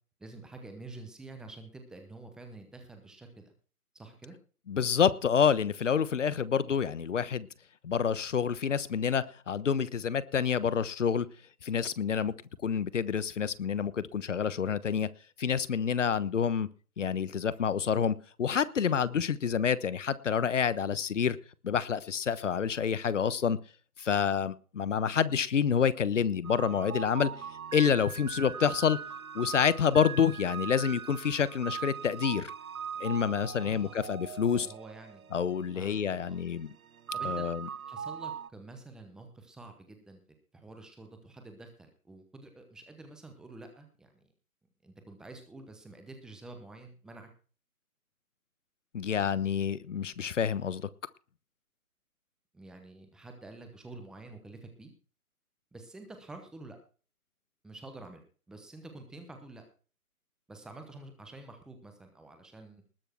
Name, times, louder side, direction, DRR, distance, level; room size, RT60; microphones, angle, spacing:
voice 1, 0.2-3.5 3.9-4.3 33.6-34.1 34.5-35.2 35.7-36.0 36.3-36.4 37.1-37.5 37.9-40.2 40.5-44.3 44.8-47.3 52.5-54.9 55.7-56.8 57.6-59.6 60.5-62.8, right 2 dB, ahead, 5 dB, 0.9 m, -48 dB
voice 2, 4.7-7.5 7.8-11.3 11.6-12.3 12.6-15.1 15.4-16.7 17.0-21.4 21.6-23.6 24.0-27.3 27.7-29.0 29.3-32.5 33.0-34.7 35.3-36.7 37.2-37.7 48.9-50.8, left 7 dB, 55° left, 17 dB, 1.2 m, -28 dB
sound 1, 26.4-38.5, right 7 dB, 70° right, 0.8 m, -41 dB
20.0 x 6.7 x 4.6 m, 0.38 s
figure-of-eight pair, 145°, 44 cm